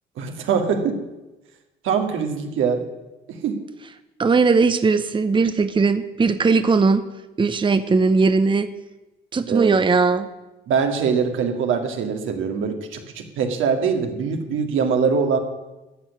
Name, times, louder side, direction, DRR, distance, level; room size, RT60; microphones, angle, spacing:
voice 1, 0.2-1.0 1.8-2.8 3.3-3.6 9.5-9.8 10.7-15.4, right 6 dB, 85° right, 4 dB, 2.0 m, -23 dB
voice 2, 4.2-7.0 7.4-8.7 9.3-10.3, right 4 dB, 25° right, 11 dB, 0.8 m, -18 dB
13.5 x 6.3 x 9.7 m, 1.0 s
cardioid pair, 90°, 20 cm